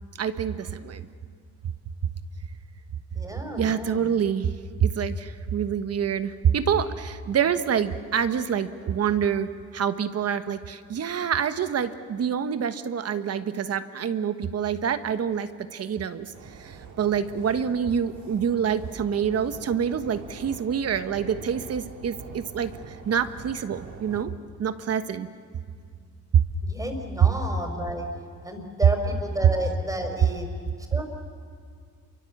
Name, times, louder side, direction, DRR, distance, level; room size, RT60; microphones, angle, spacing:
voice 1, 0.2-1.1 1.6-1.7 3.6-16.3 16.6-24.3 24.6-25.3 26.3-26.4 27.2-27.3, right 8 dB, 55° right, 10 dB, 1.3 m, -26 dB
voice 2, 3.1-4.1 26.6-28.1 28.4-30.5 30.9-31.0, right 1 dB, 10° right, 4 dB, 5.0 m, -32 dB
sound 1, 16.3-24.3, right 5 dB, 75° right, 2.6 m, -44 dB
27.5 x 24.0 x 7.3 m, 2.2 s
cardioid pair, 90°, 30 cm